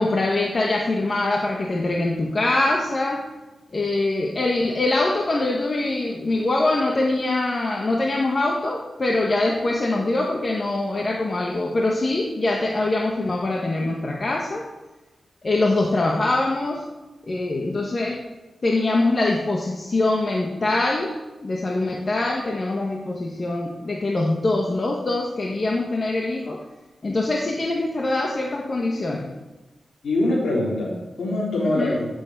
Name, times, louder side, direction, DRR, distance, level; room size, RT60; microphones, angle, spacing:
voice 1, 0.0-3.3 3.7-14.7 15.4-16.8 17.3-18.2 18.6-21.1 21.4-26.6 27.0-29.3 31.6-31.9, left 2 dB, 40° left, -1 dB, 1.4 m, -23 dB
voice 2, 30.0-32.2, left 1 dB, 85° left, -8 dB, 3.8 m, -24 dB
14.5 x 7.2 x 8.1 m, 1.1 s
wide cardioid pair, 140°, 0 cm